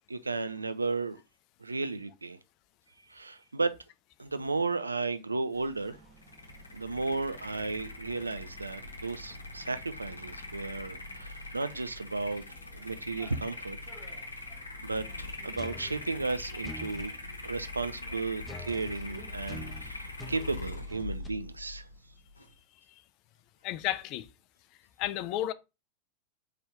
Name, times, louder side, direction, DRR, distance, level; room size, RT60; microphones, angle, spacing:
voice 1, 0.1-1.2 1.6-2.4 3.1-3.8 4.2-6.0 6.7-12.4 12.7-13.8 14.8-17.1 17.4-21.9, right 3 dB, 80° right, 0.4 m, -34 dB
sound 1, 5.5-21.0, right 1 dB, 20° right, 1.9 m, -58 dB
sound 2, 6.2-22.5, left 2 dB, 80° left, 0.8 m, -42 dB
sound 3, 15.6-17.1 18.4-21.3, left 1 dB, 10° left, 0.9 m, -45 dB
voice 2, 23.6-24.3 25.0-25.5, left 13 dB, 40° left, 0.4 m, -32 dB
4.3 x 3.3 x 3.6 m
figure-of-eight pair, 90°, 0 cm